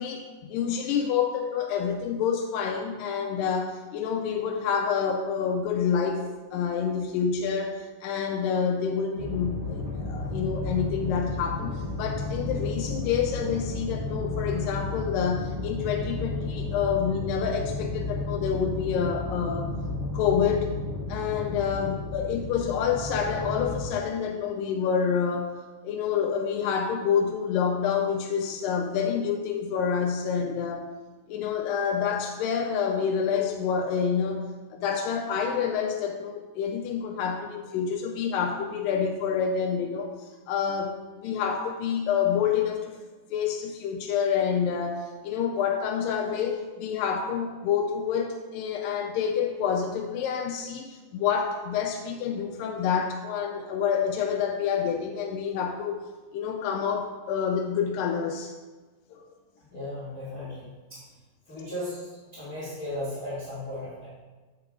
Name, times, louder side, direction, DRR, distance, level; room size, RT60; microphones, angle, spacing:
voice 1, 0.0-6.3 6.5-19.8 20.1-20.8 21.1-30.9 31.3-43.0 43.3-56.0 56.3-58.5 59.1-59.3, left 7 dB, 80° left, 3 dB, 2.1 m, -28 dB
sound 1, 9.2-23.9, left 2 dB, 15° right, 1.7 m, -33 dB
voice 2, 59.7-61.0 61.5-64.1, left 1 dB, 25° left, -11 dB, 2.3 m, -36 dB
8.3 x 6.1 x 3.7 m, 1.3 s
omnidirectional pair, 4.3 m